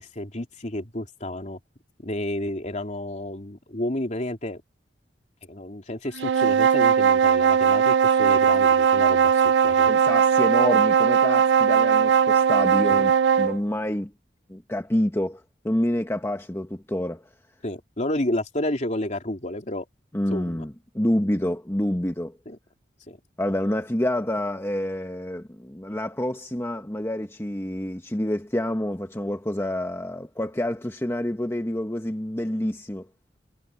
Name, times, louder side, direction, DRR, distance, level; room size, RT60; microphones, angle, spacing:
voice 1, 0.0-1.6 2.0-4.6 5.5-9.9 12.9-13.0 17.6-19.9 20.3-20.6 22.4-22.6 23.1-23.2, left 1 dB, 45° left, 3.3 m, -31 dB
sound 1, 6.2-13.6, right 7 dB, 85° right, 0.3 m, -19 dB
voice 2, 9.8-14.1 14.5-17.3 20.1-22.3 23.4-33.1, left 1 dB, 15° left, 1.2 m, -28 dB
head